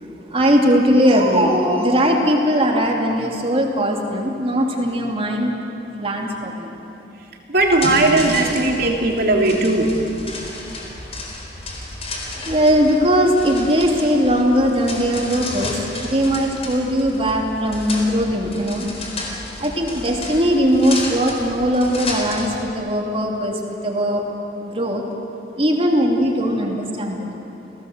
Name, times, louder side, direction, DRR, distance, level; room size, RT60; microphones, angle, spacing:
voice 1, 0.0-5.5 6.0-6.7 12.3-15.8 16.1-18.9 19.6-24.2 24.6-25.0 25.6-27.3, equal, 30° right, 1 dB, 2.9 m, -19 dB
voice 2, 7.5-9.9, right 2 dB, 60° right, 1 dB, 3.2 m, -17 dB
sound 1, 7.6-22.6, left 2 dB, 35° left, 4.4 m, -32 dB
29.0 x 17.5 x 8.1 m, 2.9 s
head